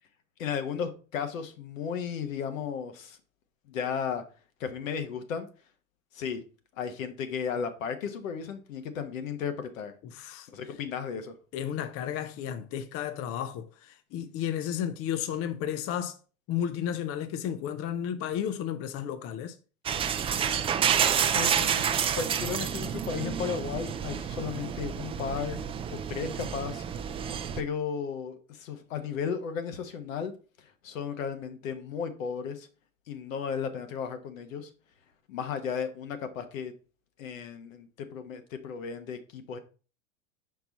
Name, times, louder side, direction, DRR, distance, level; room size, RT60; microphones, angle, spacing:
voice 1, 0.4-3.2 3.7-4.2 4.6-5.5 6.1-6.4 6.8-9.9 10.5-11.3 21.3-25.6 25.9-26.8 27.6-30.3 30.6-32.7 33.1-34.7 35.3-36.7 37.2-39.6, left 7 dB, 75° left, 1.2 m, -34 dB
voice 2, 10.1-10.5 11.5-16.1 16.5-19.6, left 9 dB, 35° left, 0.6 m, -33 dB
sound 1, 19.9-27.6, right 8 dB, 15° right, 0.3 m, -29 dB
5.8 x 4.6 x 4.0 m
hypercardioid pair, 95°, 40 cm